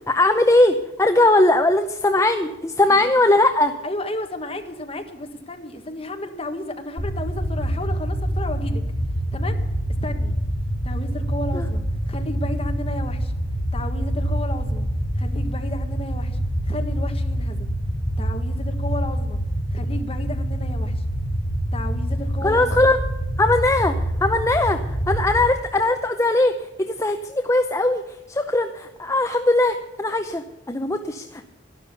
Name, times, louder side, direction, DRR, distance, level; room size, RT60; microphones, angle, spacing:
voice 1, 0.1-3.7 11.5-11.6 22.4-23.0 23.4-24.0 24.2-31.4, left 2 dB, 15° left, 6 dB, 0.6 m, -20 dB
voice 2, 3.8-8.8 9.3-9.6 10.0-10.3 10.8-13.3 13.7-14.9 15.1-16.4 16.6-17.7 18.2-19.4 19.7-21.0 21.7-22.9, left 1 dB, 30° left, 5 dB, 1.5 m, -33 dB
sound 1, 7.0-25.5, equal, 55° left, 3.5 m, -26 dB
12.0 x 11.5 x 6.9 m, 1.0 s
head